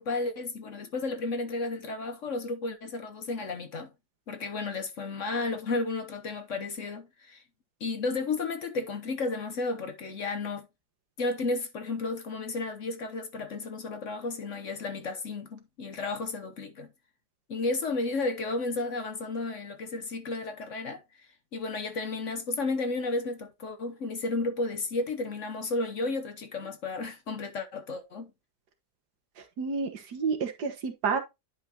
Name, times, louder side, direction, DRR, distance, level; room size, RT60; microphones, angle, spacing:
voice 1, 0.0-3.9 4.3-7.4 7.8-10.7 11.2-16.9 17.5-21.0 21.5-28.3, left 3 dB, 55° left, 1.1 m, -33 dB
voice 2, 29.6-31.2, right 5 dB, 70° right, 1.9 m, -30 dB
10.0 x 5.6 x 2.8 m
omnidirectional pair, 1.8 m